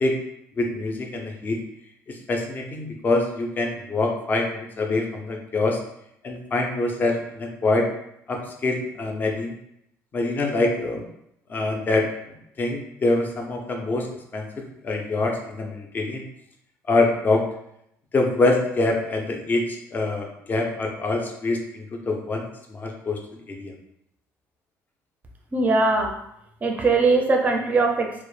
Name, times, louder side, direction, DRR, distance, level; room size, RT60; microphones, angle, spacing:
voice 1, 0.6-1.6 2.1-5.8 6.2-7.9 8.3-9.5 10.1-11.0 11.5-12.1 12.6-14.1 14.3-14.5 14.8-16.2 16.9-17.4 18.1-23.2 23.5-23.7, left 2 dB, 30° left, 2 dB, 0.4 m, -25 dB
voice 2, 25.5-26.1 26.6-28.1, right 3 dB, 25° right, 2 dB, 0.4 m, -20 dB
2.1 x 2.0 x 3.1 m, 0.76 s
cardioid pair, 120°, 6 cm